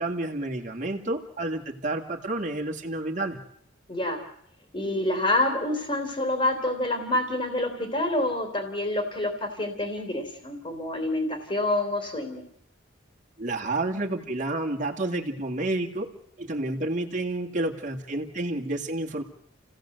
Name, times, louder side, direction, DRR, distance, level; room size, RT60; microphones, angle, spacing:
voice 1, 0.0-3.4 13.4-16.1 16.4-19.2, right 2 dB, 40° right, 2 dB, 2.3 m, -30 dB
voice 2, 3.9-4.2 4.7-12.4, left 1 dB, 30° left, 4 dB, 3.3 m, -27 dB
29.0 x 16.5 x 7.9 m, 0.73 s
head